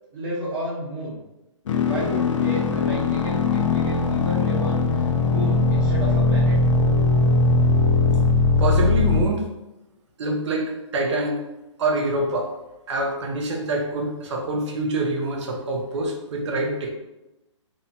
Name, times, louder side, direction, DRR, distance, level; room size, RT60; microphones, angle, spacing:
voice 1, 0.1-1.2 1.8-6.6 13.3-13.5, right 1 dB, 45° right, -10 dB, 1.1 m, -32 dB
sound 1, 1.7-9.2, left 3 dB, 70° left, 0.5 m, -20 dB
voice 2, 8.6-9.5 10.2-11.4 11.8-12.6 12.9-16.9, right 2 dB, 65° right, 1 dB, 0.7 m, -25 dB
2.7 x 2.1 x 2.7 m, 0.95 s
hypercardioid pair, 155°, 16 cm